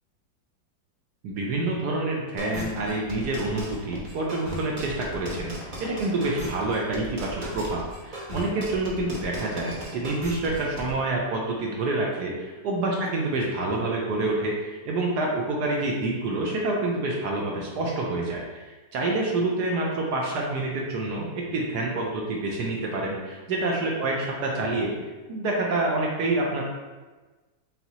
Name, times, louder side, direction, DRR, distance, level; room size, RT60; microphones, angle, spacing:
voice 1, 1.2-12.3 12.6-24.9 25.3-26.6, right 2 dB, 70° right, -2 dB, 1.1 m, -27 dB
sound 1, 2.4-10.9, equal, 40° right, 0.7 m, -36 dB
5.9 x 2.7 x 2.8 m, 1.3 s
omnidirectional pair, 2.1 m